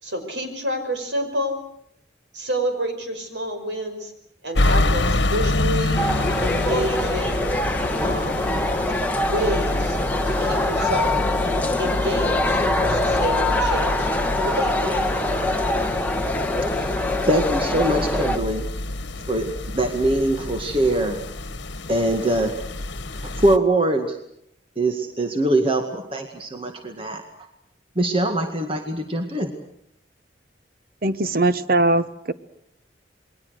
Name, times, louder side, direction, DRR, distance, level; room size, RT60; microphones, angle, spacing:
voice 1, 0.0-1.6 2.3-4.1 4.4-6.0 6.4-7.5 8.0-8.6 9.2-10.0 10.3-11.1 11.8-14.1 14.3-15.5, right 1 dB, 70° right, 6 dB, 5.6 m, -29 dB
sound 1, 4.5-23.6, left 2 dB, 70° left, 1.4 m, -27 dB
sound 2, 5.9-18.4, left 2 dB, 10° left, 1.4 m, -23 dB
voice 2, 17.2-18.7 19.3-21.2 21.9-22.6 23.2-24.2 24.8-27.2 28.0-29.5, right 1 dB, 30° right, 4 dB, 2.0 m, -22 dB
voice 3, 31.0-32.3, right 2 dB, 50° right, 13 dB, 1.1 m, -20 dB
28.0 x 22.0 x 6.5 m, 0.74 s
head